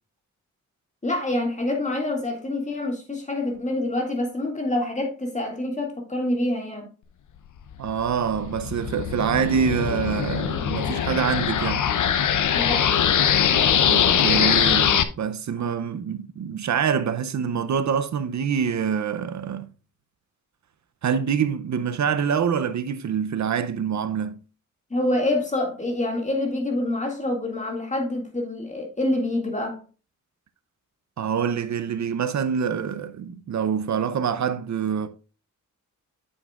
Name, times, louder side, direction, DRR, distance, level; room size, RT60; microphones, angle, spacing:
voice 1, 1.0-6.9 12.5-12.9 24.9-29.8, left 1 dB, 25° left, 2.0 m, -26 dB
sound 1, 7.7-15.0, left 8 dB, 70° left, 0.7 m, -22 dB
voice 2, 7.8-11.9 13.9-19.7 21.0-24.4 31.2-35.1, right 7 dB, 65° right, 0.6 m, -25 dB
8.6 x 7.2 x 2.4 m
wide cardioid pair, 130°, 31 cm